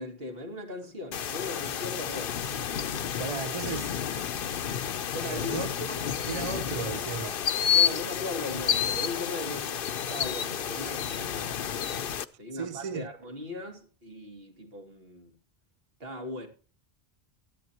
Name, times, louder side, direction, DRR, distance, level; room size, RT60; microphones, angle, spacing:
voice 1, 0.0-2.4 5.1-5.5 7.7-12.1 12.4-15.3 16.0-16.5, left 2 dB, 65° right, 2.4 m, -39 dB
sound 1, 1.1-12.2, left 8 dB, 60° left, 0.8 m, -30 dB
voice 2, 3.2-3.9 5.2-5.7 6.0-7.5 12.5-13.1, right 6 dB, 40° right, 0.5 m, -36 dB
13.5 x 11.0 x 2.9 m
omnidirectional pair, 1.1 m